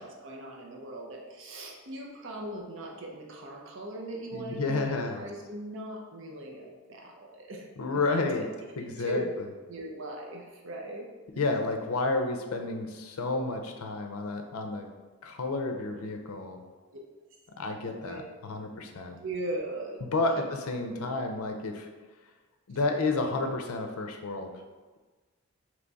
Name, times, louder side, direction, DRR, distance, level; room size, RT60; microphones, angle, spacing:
voice 1, 0.0-8.2 9.0-9.3 9.7-11.1 11.3-11.6 17.9-18.2 19.2-20.0 20.4-20.5 20.9-21.1, right 1 dB, 60° right, 0 dB, 0.6 m, -39 dB
voice 2, 4.3-5.3 7.8-8.5 8.8-9.2 11.4-14.9 15.2-16.6 17.6-19.2 20.0-21.9 22.7-24.5, left 3 dB, 85° left, 5 dB, 0.5 m, -31 dB
3.4 x 3.1 x 3.9 m, 1.3 s
head